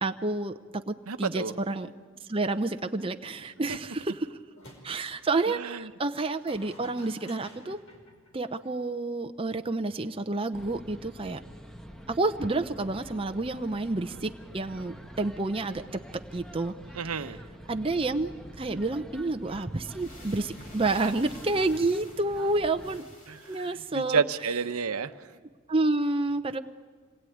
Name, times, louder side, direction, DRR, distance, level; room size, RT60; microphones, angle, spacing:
voice 1, 0.0-1.9 2.3-4.3 4.8-7.8 8.3-11.4 12.1-16.7 17.7-23.1 23.5-24.2 25.7-26.6, right 2 dB, 25° right, 6 dB, 0.7 m, -29 dB
voice 2, 1.1-1.5 5.5-5.9 16.9-17.4 20.8-21.1 23.3-25.4, right 5 dB, 85° right, 10 dB, 0.9 m, -31 dB
sound 1, 4.5-5.1 6.1-8.8, equal, 70° left, 5.1 m, -51 dB
sound 2, 10.5-23.0, equal, 5° left, 1.1 m, -46 dB
sound 3, 19.2-19.3 19.8-24.0, left 1 dB, 40° left, 4.1 m, -51 dB
26.5 x 20.0 x 9.3 m, 1.5 s
head